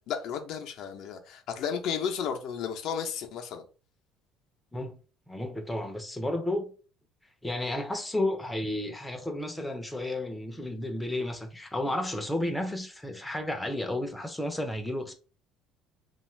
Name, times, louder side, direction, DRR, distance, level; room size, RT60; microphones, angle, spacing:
voice 1, 0.1-3.6, left 7 dB, 60° left, 0.5 m, -33 dB
voice 2, 5.3-6.7 7.4-15.1, left 1 dB, 5° left, 0.5 m, -32 dB
2.5 x 2.3 x 3.1 m
cardioid pair, 120°, 0 cm